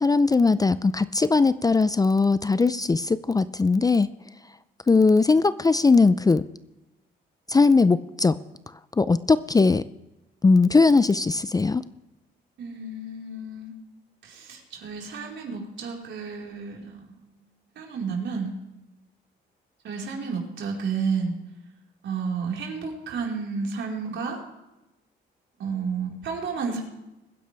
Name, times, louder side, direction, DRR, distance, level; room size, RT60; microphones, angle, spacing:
voice 1, 0.0-4.1 4.9-6.4 7.5-8.4 9.0-9.8 10.4-11.8, left 4 dB, 20° left, 15 dB, 0.4 m, -19 dB
voice 2, 12.6-13.8 14.2-17.1 17.8-18.5 19.8-21.4 22.0-24.4 25.6-26.8, right 5 dB, 70° right, -1 dB, 4.3 m, -31 dB
22.5 x 10.0 x 3.4 m, 0.97 s
cardioid pair, 90°, 20 cm